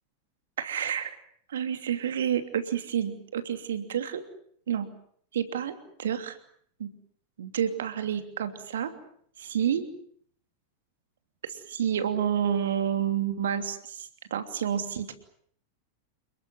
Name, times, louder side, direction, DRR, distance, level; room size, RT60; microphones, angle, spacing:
voice 1, 0.6-1.2 1.5-4.2 4.7-4.9 5.3-5.7 6.0-6.4 6.8-6.9 7.4-8.9 9.4-9.8 11.4-15.1, right 9 dB, 60° right, 9 dB, 2.9 m, -29 dB
29.0 x 21.0 x 7.9 m, 0.63 s
figure-of-eight pair, 90°, 0 cm